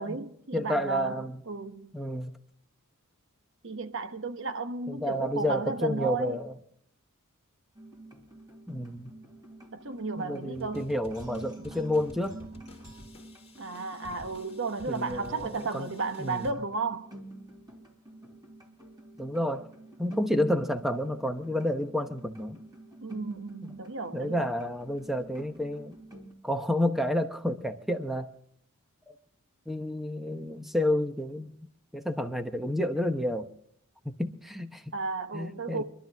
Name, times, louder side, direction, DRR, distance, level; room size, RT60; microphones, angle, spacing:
voice 1, 0.0-1.9 3.6-6.4 9.7-10.9 13.6-17.1 23.0-24.5 34.9-35.8, right 3 dB, 60° right, 1.0 m, -34 dB
voice 2, 0.5-1.4 1.9-2.3 4.9-6.5 8.7-9.1 10.2-12.4 14.9-15.9 16.2-16.6 19.2-19.7 20.0-22.6 24.1-25.9 26.4-28.3 29.7-31.5 31.9-33.5 34.0-34.8 35.3-35.8, left 1 dB, ahead, 0.9 m, -30 dB
sound 1, 7.7-26.3, right 2 dB, 20° right, 2.8 m, -49 dB
sound 2, 10.5-16.5, left 1 dB, 25° left, 2.4 m, -51 dB
24.5 x 12.0 x 3.5 m
head